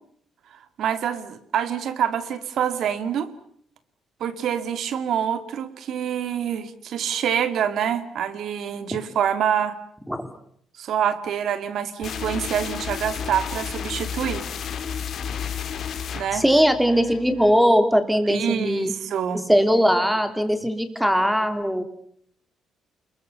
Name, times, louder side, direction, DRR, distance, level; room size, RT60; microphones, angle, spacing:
voice 1, 0.8-3.3 4.2-9.8 10.8-14.4 16.1-16.4 18.3-19.4, right 9 dB, 65° right, 11 dB, 2.4 m, -26 dB
sound 1, 12.0-17.7, left 7 dB, 55° left, 3.3 m, -32 dB
voice 2, 16.3-18.9 19.5-21.8, equal, ahead, 8 dB, 3.1 m, -20 dB
30.0 x 22.0 x 7.0 m, 0.66 s
cardioid pair, 130°, 0 cm